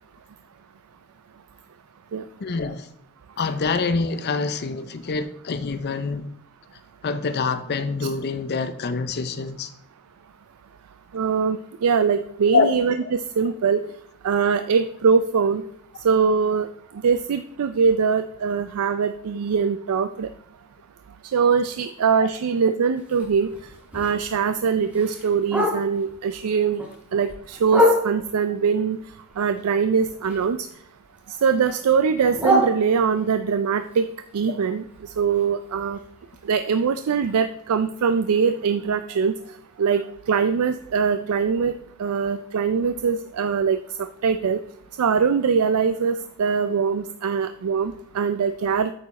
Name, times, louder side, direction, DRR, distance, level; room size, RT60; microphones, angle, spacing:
voice 1, 2.4-2.9 3.4-6.3 7.0-9.7 12.5-12.7 13.0-13.1, left 4 dB, 50° left, 12 dB, 0.5 m, -25 dB
voice 2, 11.1-12.9 13.4-13.8 14.2-15.6 16.0-16.7 17.0-20.3 21.3-23.5 23.9-26.8 27.1-29.0 29.4-30.6 31.4-34.1 34.3-34.8 35.2-36.0 36.5-39.3 39.8-41.7 42.0-44.6 45.0-48.9, right 6 dB, 90° right, 9 dB, 0.4 m, -22 dB
Bark, 23.0-26.2 26.6-28.5 28.9-30.8 31.0-33.3 33.8-37.7 38.0-38.1 38.4-38.8 39.3-39.4 39.7-39.8 40.3-40.4, equal, 5° right, 2.8 m, -28 dB
8.9 x 6.9 x 4.1 m, 0.72 s
head